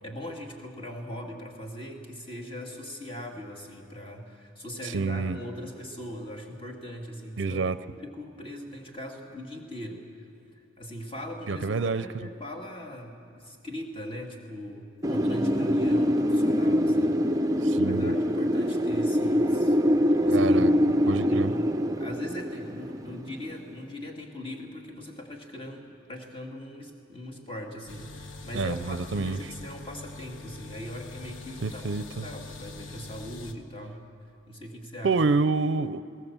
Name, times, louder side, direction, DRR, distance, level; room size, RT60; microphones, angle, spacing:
voice 1, 0.0-7.6 7.9-10.1 10.5-19.8 20.2-34.0 34.5-35.2, equal, 30° left, 1 dB, 2.1 m, -40 dB
voice 2, 4.8-5.4 7.4-7.8 11.5-12.0 17.6-18.1 20.3-20.7 21.1-21.5 28.5-29.5 31.6-32.3 35.0-36.0, right 4 dB, 70° right, 13 dB, 0.5 m, -27 dB
Wind, 15.0-23.7, equal, 20° right, 0.5 m, -24 dB
sound 1, 27.9-33.5, left 3 dB, 90° left, 1.1 m, -43 dB
20.0 x 18.0 x 7.3 m, 2.4 s
head